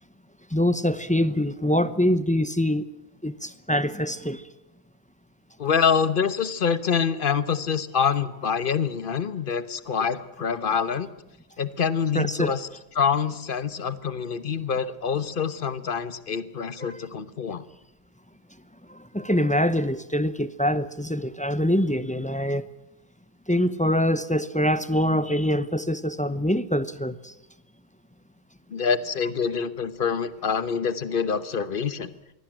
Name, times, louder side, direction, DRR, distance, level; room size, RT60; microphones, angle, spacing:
voice 1, 0.5-2.9 3.2-4.5 12.1-12.5 16.8-17.0 18.9-22.7 23.5-27.3, equal, 10° left, 0.7 m, -24 dB
voice 2, 5.6-11.1 11.6-12.7 12.9-17.6 28.7-32.1, left 6 dB, 55° left, 1.2 m, -26 dB
23.0 x 16.5 x 9.0 m
omnidirectional pair, 1.1 m